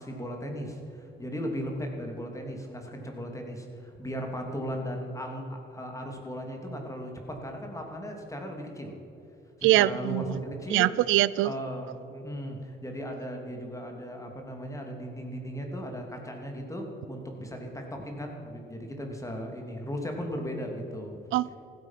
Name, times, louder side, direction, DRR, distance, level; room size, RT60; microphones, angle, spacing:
voice 1, 0.0-9.0 9.6-10.9 11.4-21.2, equal, 15° left, 2 dB, 2.9 m, -37 dB
voice 2, 9.6-10.3 10.7-11.5 21.3-21.5, right 16 dB, 90° right, 20 dB, 0.4 m, -23 dB
15.5 x 14.0 x 5.9 m, 2.8 s
cardioid pair, 90°, 20 cm